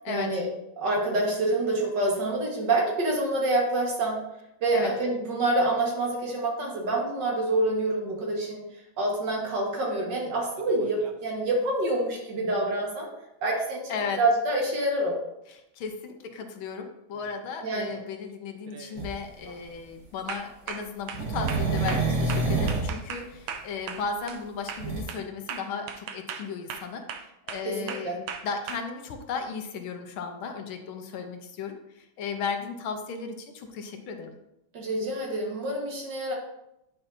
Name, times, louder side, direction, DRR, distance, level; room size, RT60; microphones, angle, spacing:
voice 1, 0.1-0.5 0.8-4.3 4.6-8.7 9.0-13.1 13.4-15.2 17.6-18.0 27.6-28.2 34.7-36.3, right 2 dB, 60° right, -1 dB, 2.1 m, -27 dB
sound 1, 10.6-11.3 15.5-15.6 17.1-17.4 17.9-18.2 18.7-19.0 19.4-19.7 20.3-24.4 24.7-28.8, right 7 dB, 80° right, 1.4 m, -39 dB
voice 2, 13.9-14.2 15.5-34.3, left 5 dB, 80° left, 5 dB, 1.7 m, -35 dB
sound 2, 19.0-19.1 21.1-22.9 24.8-25.0, right 3 dB, 45° right, 1.8 m, -26 dB
9.7 x 5.5 x 2.7 m, 0.85 s
omnidirectional pair, 2.2 m